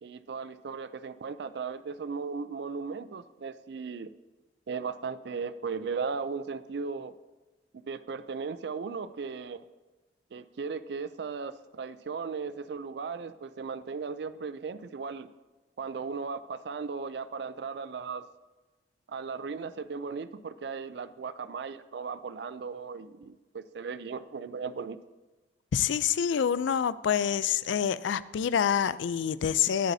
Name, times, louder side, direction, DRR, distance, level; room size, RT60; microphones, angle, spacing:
voice 1, 0.0-4.1 4.7-7.1 7.9-9.6 10.3-15.3 15.8-18.3 19.1-25.0, right 5 dB, 65° right, 14 dB, 0.4 m, -37 dB
voice 2, 25.7-29.9, left 8 dB, 80° left, 17 dB, 0.4 m, -27 dB
18.5 x 8.2 x 2.7 m, 1.2 s
head